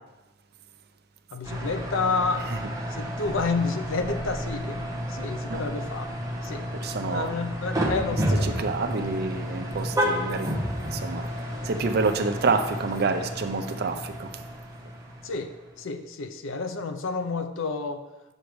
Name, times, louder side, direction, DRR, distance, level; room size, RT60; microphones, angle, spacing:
voice 1, 1.3-2.5 2.9-6.1 6.4-6.7 7.0-8.7 15.2-18.1, left 4 dB, 70° left, 9 dB, 0.6 m, -30 dB
sound 1, 1.4-15.8, equal, 15° right, 1.0 m, -31 dB
voice 2, 6.7-7.3 8.4-10.6 10.8-14.3, right 4 dB, 50° right, 7 dB, 0.5 m, -28 dB
8.1 x 6.6 x 3.1 m, 1.1 s
head